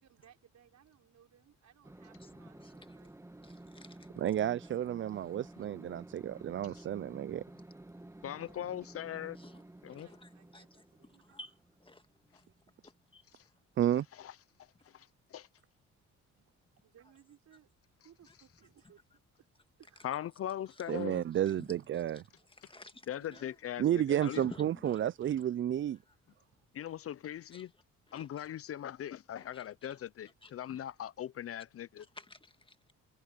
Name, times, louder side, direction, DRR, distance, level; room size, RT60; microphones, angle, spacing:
voice 1, 0.0-3.5 8.4-8.6 9.9-11.3 16.8-17.7 18.0-19.0 19.4-19.5 19.8-20.1 23.1-23.6 25.2-25.4, right 10 dB, 65° right, 6.2 m, -63 dB
sound 1, 1.8-12.9, right 1 dB, 10° right, 1.4 m, -53 dB
voice 2, 3.4-4.1 9.4-9.6 10.1-10.6 11.3-11.5 11.8-12.0 12.3-12.4 13.1-13.2 21.6-22.0 22.6-23.1 23.3-23.5 24.1-25.1 27.5-27.6 28.1-28.3 29.4-29.6 30.4-30.5 32.2-32.9, left 2 dB, 15° left, 1.7 m, -52 dB
voice 3, 4.2-7.4 13.8-14.1 20.9-22.2 23.8-26.0, right 11 dB, 40° right, 0.4 m, -31 dB
voice 4, 8.2-9.4 9.8-10.1 13.3-13.4 14.1-15.5 20.0-21.3 22.6-22.7 23.1-24.4 26.7-27.7 28.1-32.1, left 11 dB, 50° left, 0.6 m, -40 dB
cardioid pair, 90°, 30 cm